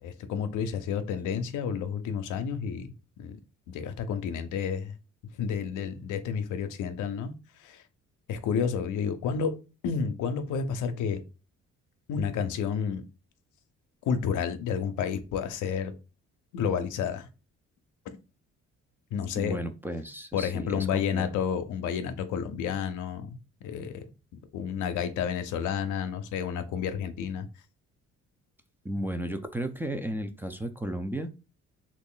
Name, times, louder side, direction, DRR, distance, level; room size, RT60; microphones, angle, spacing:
voice 1, 0.0-2.9 3.2-3.4 3.7-4.9 5.4-7.3 7.6-7.8 8.3-9.6 9.8-11.2 12.1-13.0 14.0-15.9 16.5-17.3 19.1-19.6 20.3-23.4 23.6-24.0 24.5-27.5, left 7 dB, 85° left, 0.6 m, -30 dB
voice 2, 19.4-21.4 28.8-31.3, right 1 dB, 5° right, 0.4 m, -34 dB
3.0 x 2.5 x 3.8 m
cardioid pair, 90°, 30 cm